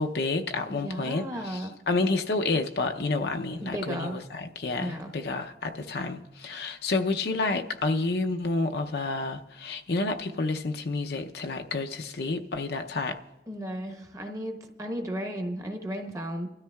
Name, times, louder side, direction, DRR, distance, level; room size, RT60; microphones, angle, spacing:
voice 1, 0.0-13.2, left 3 dB, 60° left, 5 dB, 0.6 m, -29 dB
voice 2, 0.7-1.8 3.6-4.2 4.8-5.1 13.5-16.5, equal, 20° right, 4 dB, 1.0 m, -34 dB
25.0 x 13.0 x 2.3 m, 1.0 s
head